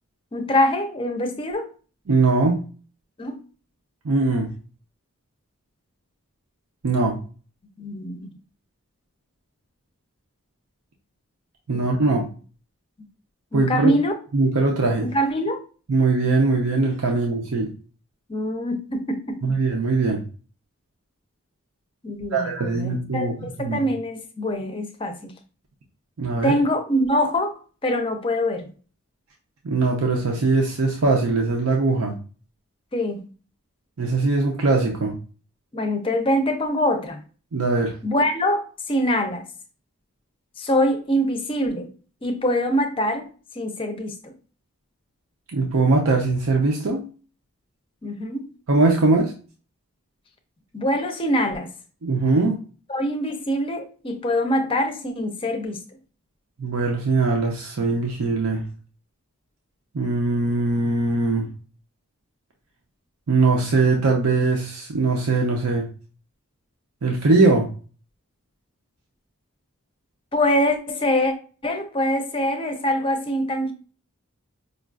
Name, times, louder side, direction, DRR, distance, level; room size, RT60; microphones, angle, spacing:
voice 1, 0.3-1.7 3.2-3.4 7.8-8.3 11.7-12.2 13.5-14.1 15.0-15.6 18.3-19.6 22.0-25.3 26.4-27.5 27.8-28.7 32.9-33.2 35.7-37.2 38.0-39.5 40.6-41.9 42.2-43.3 43.6-44.3 48.0-48.5 50.7-51.7 52.9-55.8 70.3-71.3 71.6-73.7, equal, 25° left, 0.5 m, -24 dB
voice 2, 2.1-2.6 4.0-4.5 6.8-7.2 11.7-12.2 13.5-13.9 14.3-15.1 15.9-17.7 19.4-20.2 22.3-23.8 26.2-26.6 29.6-32.1 34.0-35.1 37.5-37.9 45.5-47.1 48.7-49.3 52.0-52.6 56.6-58.6 59.9-61.5 63.3-65.8 67.0-67.7, right 3 dB, 80° right, 0.6 m, -21 dB
5.0 x 2.3 x 2.3 m
head